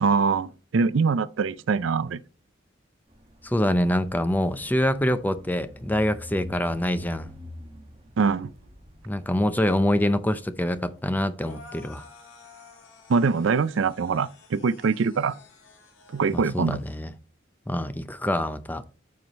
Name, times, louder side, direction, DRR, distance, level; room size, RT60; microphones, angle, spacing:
voice 1, 0.0-2.2 8.2-8.5 13.1-15.4 16.1-16.8, right 5 dB, 70° right, 0.4 m, -23 dB
sound 1, 3.1-10.0, equal, 30° right, 1.6 m, -45 dB
voice 2, 3.4-7.3 9.1-12.0 16.3-17.1 17.7-18.8, left 1 dB, 10° left, 0.6 m, -25 dB
sound 2, 11.4-17.0, left 4 dB, 85° left, 4.0 m, -51 dB
14.0 x 4.7 x 3.0 m
head